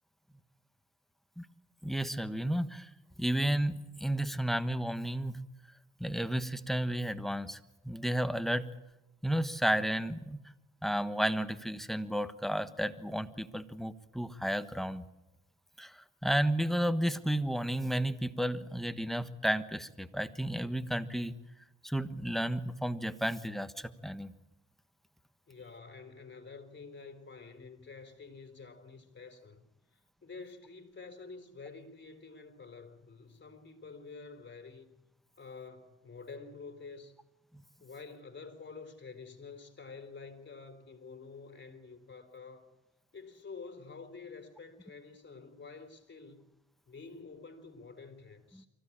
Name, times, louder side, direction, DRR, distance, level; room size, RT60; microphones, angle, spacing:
voice 1, 1.8-2.9 3.2-5.4 6.0-7.6 7.8-8.6 9.2-10.4 10.8-15.0 15.8-21.4 21.8-24.3, right 1 dB, ahead, 1.3 m, -32 dB
voice 2, 25.5-29.6 29.9-34.9 35.4-37.2 37.8-42.7 43.1-46.5 46.9-48.7, left 4 dB, 40° left, 3.9 m, -49 dB
24.5 x 15.5 x 8.7 m
cardioid pair, 90°, 30 cm